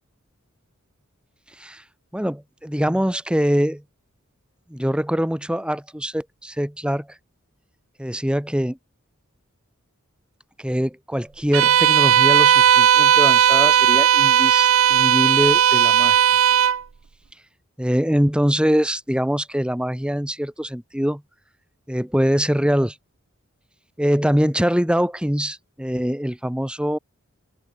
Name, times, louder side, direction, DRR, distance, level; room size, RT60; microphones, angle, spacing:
voice 1, 2.1-3.8 4.7-7.1 8.0-8.8 10.6-16.2 17.8-21.2 21.9-22.9 24.0-27.0, equal, 5° right, 1.4 m, -23 dB
Bowed string instrument, 11.5-16.8, right 9 dB, 70° right, 0.6 m, -16 dB
open air
head